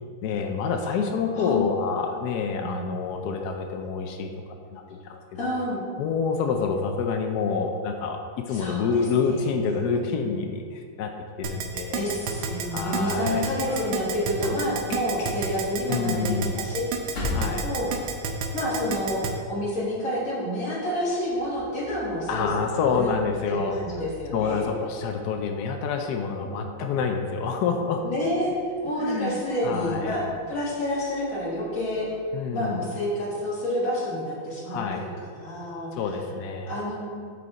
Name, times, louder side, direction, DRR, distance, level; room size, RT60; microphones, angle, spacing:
voice 1, 0.2-4.3 4.7-5.5 6.0-11.1 11.4-12.1 12.7-13.4 15.9-16.6 17.3-17.7 22.3-23.8 24.3-28.0 29.0-30.1 32.3-32.8 34.7-35.1 35.9-36.7, left 5 dB, 90° left, 4 dB, 0.8 m, -27 dB
voice 2, 2.6-3.0 5.3-5.8 8.5-8.9 9.3-9.8 11.9-16.8 17.3-17.9 18.5-19.2 19.5-23.1 23.5-24.7 26.5-26.7 28.0-28.6 28.8-32.1 32.5-35.9 36.7-37.3, equal, 40° left, -6 dB, 2.0 m, -29 dB
Keyboard (musical), 11.4-19.3, right 7 dB, 80° right, 1.5 m, -30 dB
sound 1, 12.5-18.7 19.0-19.5 20.6-32.2, left 2 dB, 70° left, 2.3 m, -42 dB
6.8 x 4.9 x 4.0 m, 2.1 s
omnidirectional pair, 2.3 m